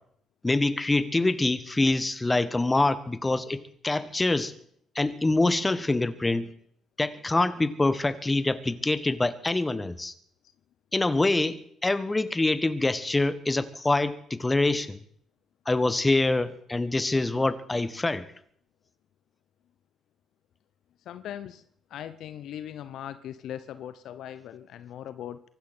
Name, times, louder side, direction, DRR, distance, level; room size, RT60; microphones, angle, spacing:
voice 1, 0.4-4.5 4.9-6.5 7.0-10.1 10.9-15.0 15.6-18.3, left 2 dB, 20° left, 14 dB, 1.5 m, -25 dB
voice 2, 21.0-21.6 21.9-25.4, left 10 dB, 65° left, 13 dB, 0.8 m, -39 dB
24.0 x 12.0 x 4.4 m, 0.66 s
hypercardioid pair, 45°, 0 cm